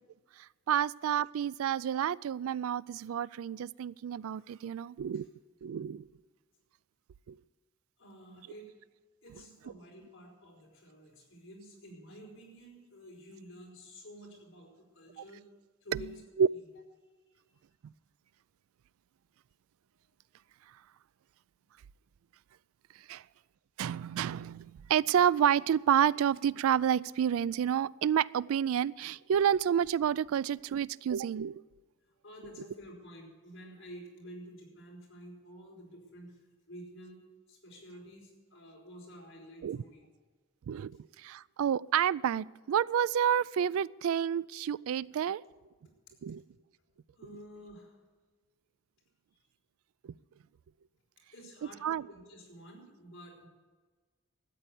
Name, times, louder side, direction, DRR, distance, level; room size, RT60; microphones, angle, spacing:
voice 1, 0.4-5.3 5.6-6.1 7.3-7.4 15.9-16.1 16.4-16.5 23.1-23.2 23.8-31.6 39.6-39.8 40.7-40.9 41.2-45.4 46.2-46.4 50.0-50.1 51.8-52.0, right 9 dB, 80° right, 21 dB, 0.3 m, -29 dB
voice 2, 8.0-8.7 9.2-15.4 15.8-16.1 17.2-17.4 23.1-23.2 32.0-36.4 36.7-37.2 37.5-40.1 47.2-48.0 51.3-53.5, equal, 60° left, -2 dB, 4.9 m, -50 dB
13.5 x 8.9 x 8.3 m, 1.4 s
head